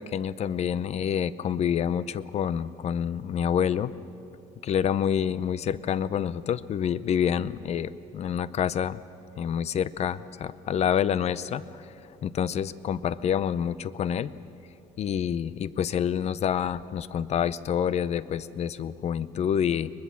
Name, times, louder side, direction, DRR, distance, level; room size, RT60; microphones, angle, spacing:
voice 1, 0.0-3.9 4.6-9.0 9.4-11.8 12.2-14.3 15.0-19.9, left 8 dB, 50° left, 17 dB, 0.6 m, -27 dB
23.0 x 20.5 x 7.5 m, 2.8 s
cardioid pair, 125°, 14 cm